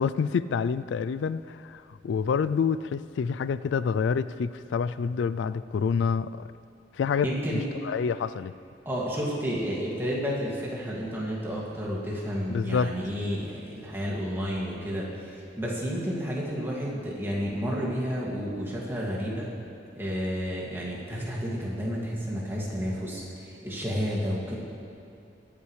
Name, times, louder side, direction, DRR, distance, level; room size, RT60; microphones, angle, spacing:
voice 1, 0.0-6.5 6.9-8.5 12.5-12.9, left 6 dB, 85° left, 15 dB, 0.3 m, -28 dB
voice 2, 7.2-7.7 8.9-19.5 20.0-24.6, equal, 15° right, -5 dB, 2.2 m, -31 dB
21.5 x 8.6 x 3.2 m, 2.5 s
head